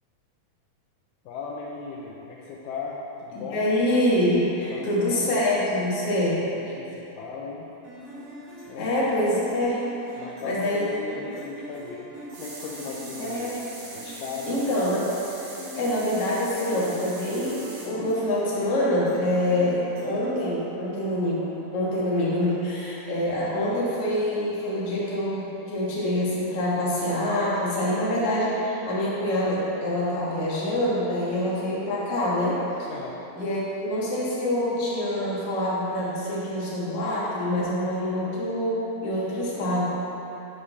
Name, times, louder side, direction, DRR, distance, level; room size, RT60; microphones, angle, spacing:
voice 1, 1.3-3.7 4.7-5.4 6.0-7.7 8.7-8.9 10.2-13.5 13.9-14.6 32.9-33.2 39.5-39.8, left 4 dB, 80° left, -2 dB, 2.3 m, -38 dB
voice 2, 3.3-6.4 8.8-9.8 10.4-10.9 13.2-13.5 14.5-15.1 15.7-17.6 17.9-32.6 33.4-39.8, left 1 dB, 50° left, -7 dB, 2.4 m, -25 dB
sound 1, 7.8-21.0, equal, 45° right, 3.0 m, -43 dB
sound 2, 12.3-17.9, right 2 dB, 70° right, 3.2 m, -42 dB
12.5 x 5.1 x 4.1 m, 3.0 s
omnidirectional pair, 3.9 m